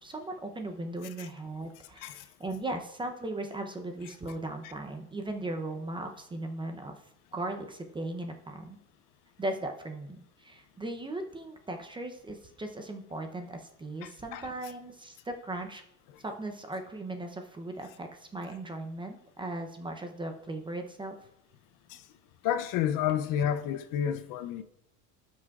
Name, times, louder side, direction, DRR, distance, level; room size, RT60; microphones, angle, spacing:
voice 1, 0.0-7.0 7.3-8.8 9.4-15.8 16.2-21.1, right 2 dB, 10° right, 0.6 m, -38 dB
voice 2, 14.0-14.5 16.1-16.2 21.9-22.0 22.4-24.6, left 9 dB, 50° left, 0.6 m, -31 dB
16.0 x 6.1 x 2.4 m
cardioid pair, 140°, 42 cm